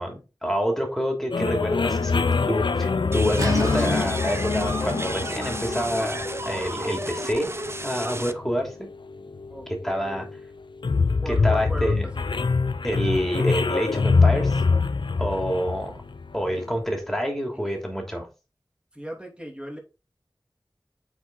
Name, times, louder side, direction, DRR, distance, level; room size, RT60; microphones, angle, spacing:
voice 1, 0.0-8.7 9.7-10.3 11.3-12.1 12.8-14.6 15.2-15.9 16.3-18.3, equal, 5° left, 1 dB, 2.9 m, -27 dB
sound 1, 1.3-16.7, left 4 dB, 90° left, 0.5 m, -25 dB
sound 2, 3.1-8.3, right 2 dB, 30° right, 0.7 m, -34 dB
sound 3, 3.4-9.0, right 1 dB, 50° right, 2.8 m, -36 dB
voice 2, 9.5-10.2 11.2-12.3 18.9-19.8, equal, 10° right, 1 dB, 2.8 m, -38 dB
8.1 x 4.9 x 4.0 m, 0.30 s
wide cardioid pair, 45°, 8 cm